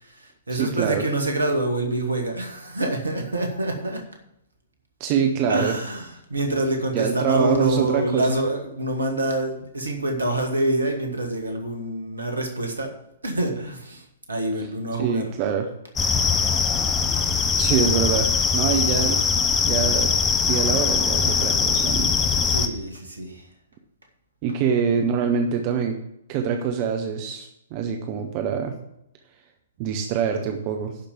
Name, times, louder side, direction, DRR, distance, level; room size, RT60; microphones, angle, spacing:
voice 1, 0.0-4.0 5.5-12.9 13.2-15.3 22.4-23.5, right 1 dB, 75° right, 4 dB, 1.9 m, -26 dB
voice 2, 0.6-1.0 5.0-5.8 6.9-8.4 15.0-15.7 17.6-20.2 20.5-22.1 22.4-22.6 24.4-26.0 26.3-28.8 29.8-31.0, right 7 dB, 35° right, 5 dB, 0.9 m, -25 dB
sound 1, 16.0-22.7, left 5 dB, 15° left, 0.7 m, -21 dB
11.0 x 5.2 x 7.2 m, 0.81 s
figure-of-eight pair, 115°, 0 cm